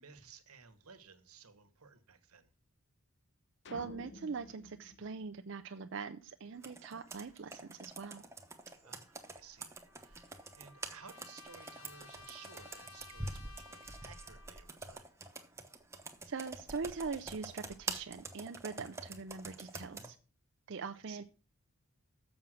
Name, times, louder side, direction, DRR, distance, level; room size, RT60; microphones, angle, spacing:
voice 1, 0.0-2.5 8.7-15.1 20.9-21.2, right 6 dB, 85° right, 1.3 m, -57 dB
sound 1, 3.6-6.1, left 2 dB, 50° left, 0.7 m, -54 dB
voice 2, 3.7-8.2 16.2-20.2 20.7-21.2, right 5 dB, 55° right, 0.5 m, -42 dB
Computer keyboard, 6.6-20.1, right 3 dB, 10° right, 0.9 m, -46 dB
Trumpet, 9.9-14.8, left 3 dB, 75° left, 1.5 m, -56 dB
7.1 x 6.2 x 7.5 m
head